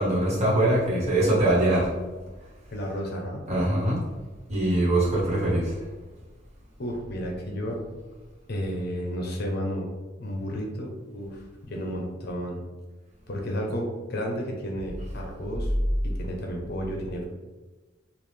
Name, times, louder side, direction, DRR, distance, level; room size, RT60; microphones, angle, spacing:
voice 1, 0.0-1.9 3.5-4.0 4.5-5.7, right 1 dB, 35° right, -7 dB, 1.4 m, -22 dB
voice 2, 2.7-3.5 6.8-7.8 8.5-9.9 10.2-12.6 13.3-15.7 16.0-17.3, equal, 55° left, 1 dB, 0.7 m, -32 dB
3.8 x 2.4 x 3.2 m, 1.2 s
head